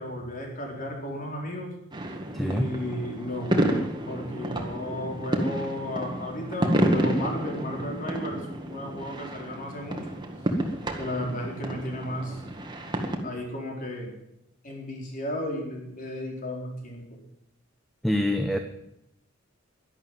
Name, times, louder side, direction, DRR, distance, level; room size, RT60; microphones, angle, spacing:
voice 1, 0.0-1.7 2.4-10.0 11.0-12.4 13.2-14.1 14.6-17.0, left 1 dB, 45° left, 0 dB, 4.4 m, -34 dB
sound 1, 1.9-13.2, right 1 dB, 25° right, 1.9 m, -30 dB
voice 2, 2.3-2.7 18.0-18.6, left 1 dB, ahead, 6 dB, 0.9 m, -25 dB
11.5 x 11.5 x 9.2 m, 0.83 s
head